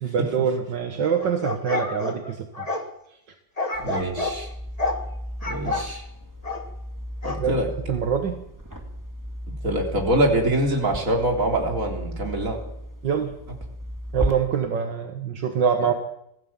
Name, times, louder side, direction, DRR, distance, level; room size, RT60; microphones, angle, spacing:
voice 1, 0.0-2.7 7.4-7.5 7.9-8.4 13.0-13.3 14.1-15.9, right 7 dB, 70° right, 5 dB, 2.1 m, -24 dB
sound 1, 1.2-2.9 3.6-4.4 4.8-5.0 5.4-5.9 6.4-6.7 7.2-7.4, left 2 dB, 20° left, 1.9 m, -29 dB
sound 2, 3.7-14.3, equal, 10° right, 2.1 m, -35 dB
voice 2, 3.8-4.5 5.4-6.0 7.2-7.7 9.5-12.6, right 1 dB, 45° right, 1 dB, 4.1 m, -24 dB
25.0 x 15.5 x 7.4 m, 0.78 s
omnidirectional pair, 2.0 m